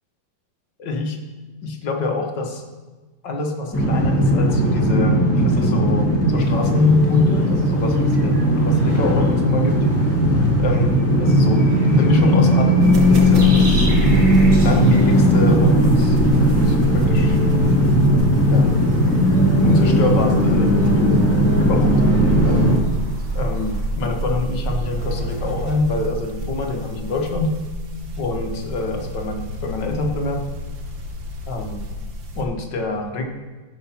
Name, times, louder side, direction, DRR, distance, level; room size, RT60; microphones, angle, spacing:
voice 1, 0.8-1.2 1.6-2.6 3.2-9.8 10.6-13.9 14.6-17.4 18.4-18.7 19.6-21.2 21.6-22.8 23.3-27.6 28.2-30.4 31.5-31.8 32.4-33.2, left 2 dB, 60° left, 3 dB, 2.0 m, -24 dB
sound 1, 3.7-22.8, equal, 5° left, 1.9 m, -17 dB
sound 2, 6.3-23.9, right 1 dB, 45° right, 4.1 m, -38 dB
sound 3, 12.8-32.4, right 1 dB, 65° right, 2.1 m, -28 dB
16.0 x 6.2 x 5.9 m, 1.3 s
omnidirectional pair, 2.2 m